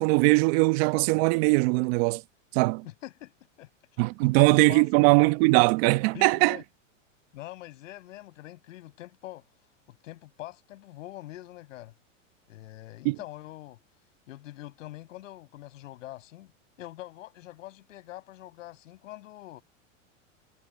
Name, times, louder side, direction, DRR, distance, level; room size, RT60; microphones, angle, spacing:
voice 1, 0.0-2.2 2.5-2.8 4.0-6.6 13.0-13.1, right 25 dB, 50° right, 1.1 m, -21 dB
voice 2, 2.8-3.7 4.2-4.8 5.1-5.3 6.1-6.6 7.3-9.4 9.9-11.9 12.5-13.8 14.3-16.5 16.8-19.6, left 15 dB, 75° left, 7.5 m, -44 dB
hypercardioid pair, 125°, 39 cm